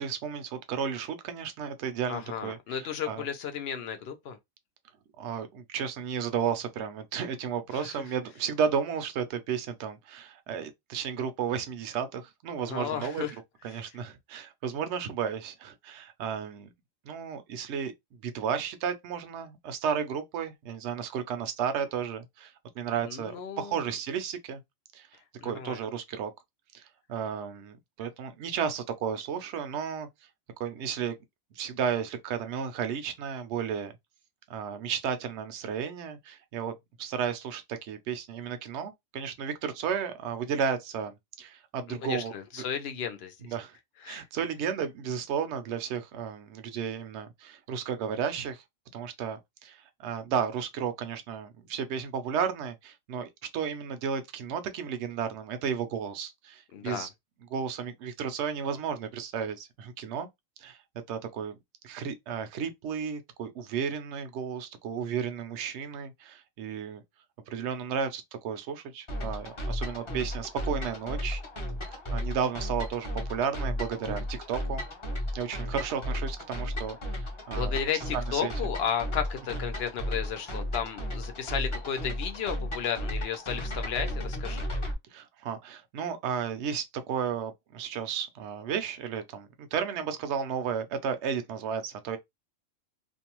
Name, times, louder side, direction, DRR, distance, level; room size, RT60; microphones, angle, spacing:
voice 1, 0.0-3.2 5.2-13.2 13.6-16.7 17.1-17.9 18.2-24.6 24.9-25.1 25.4-26.3 26.7-26.8 27.1-30.1 30.6-31.2 31.6-33.9 34.5-36.7 37.0-42.3 43.4-43.8 44.0-48.6 48.9-57.1 57.5-60.3 60.6-60.8 61.1-61.6 61.8-67.0 67.5-71.4 72.1-74.8 75.3-78.5 85.1-92.2, right 7 dB, 65° right, 0.8 m, -33 dB
voice 2, 2.1-4.4 7.7-8.0 12.7-13.3 13.7-13.8 23.0-23.8 25.4-25.8 41.9-43.3 44.0-44.2 56.7-57.1 77.5-84.6, left 8 dB, 60° left, 0.8 m, -33 dB
sound 1, 69.1-84.9, equal, 30° left, 0.6 m, -34 dB
2.6 x 2.2 x 2.9 m
omnidirectional pair, 1.3 m